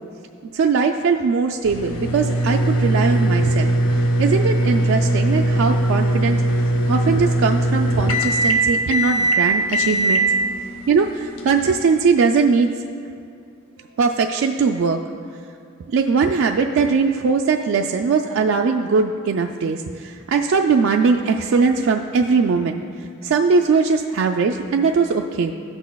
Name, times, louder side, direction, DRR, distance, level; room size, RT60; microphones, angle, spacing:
voice 1, 0.5-10.2 10.9-12.7 14.0-15.0 15.9-25.5, right 5 dB, 70° right, 3 dB, 0.3 m, -20 dB
sound 1, 1.6-12.0, right 1 dB, 80° left, 0.7 m, -20 dB
14.0 x 6.1 x 2.3 m, 2.4 s
head